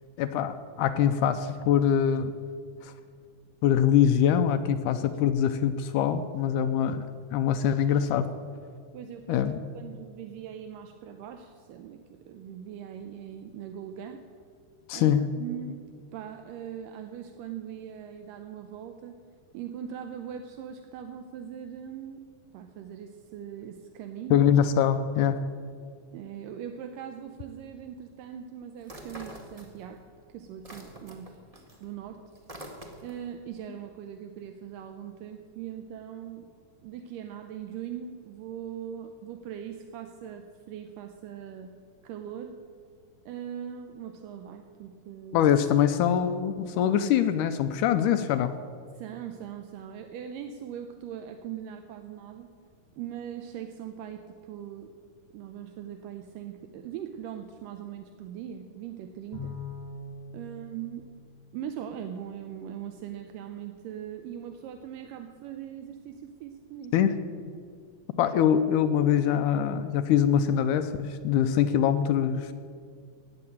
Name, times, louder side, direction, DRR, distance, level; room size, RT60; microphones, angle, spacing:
voice 1, 0.2-2.3 2.8-2.9 3.6-8.3 9.3-9.6 14.9-15.3 24.3-25.4 45.3-48.6 66.9-67.1 68.2-72.5, left 9 dB, 75° left, 9 dB, 2.0 m, -24 dB
voice 2, 8.9-9.4 9.7-14.3 14.9-15.8 16.1-19.2 19.5-22.3 22.5-24.5 26.1-30.0 30.3-31.4 31.8-32.3 33.0-36.5 36.8-41.7 42.0-42.6 43.3-45.5 49.0-52.5 53.0-54.9 55.3-59.5 60.3-61.2 61.5-67.0, right 9 dB, 80° right, 7 dB, 2.4 m, -40 dB
sound 1, 28.8-30.1 30.4-33.3, equal, 35° right, 0.6 m, -45 dB
Bowed string instrument, 59.3-61.9, left 3 dB, 50° left, 1.3 m, -42 dB
14.5 x 9.7 x 8.9 m, 2.2 s
omnidirectional pair, 4.0 m